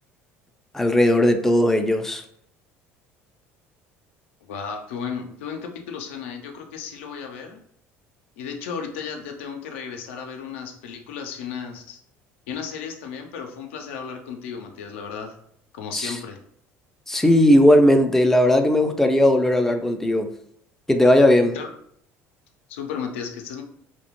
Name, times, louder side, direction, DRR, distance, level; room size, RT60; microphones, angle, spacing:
voice 1, 0.7-2.2 15.9-16.2 17.1-20.3 20.9-21.6, left 1 dB, 5° left, 5 dB, 0.3 m, -17 dB
voice 2, 4.4-7.6 8.4-12.0 12.5-15.4 15.7-16.4 21.5-21.7 22.7-23.6, left 6 dB, 85° left, 3 dB, 0.4 m, -34 dB
2.3 x 2.1 x 3.0 m, 0.69 s
supercardioid pair, 80°, 7 cm